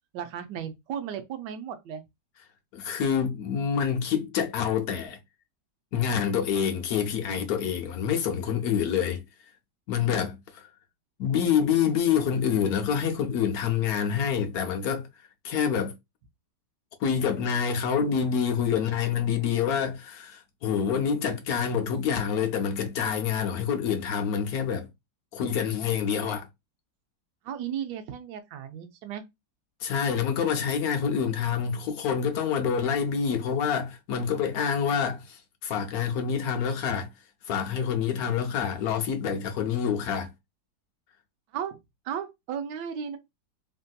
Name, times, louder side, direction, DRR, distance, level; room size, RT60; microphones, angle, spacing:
voice 1, 0.1-2.0 27.4-29.2 41.5-41.8 42.0-43.2, right 8 dB, 75° right, 1.2 m, -35 dB
voice 2, 2.7-5.2 5.9-9.2 9.9-10.6 11.2-15.1 15.4-15.9 17.0-24.9 25.3-26.5 29.8-37.1 37.5-40.3, left 7 dB, 70° left, 0.9 m, -27 dB
3.3 x 2.6 x 2.2 m
omnidirectional pair, 1.9 m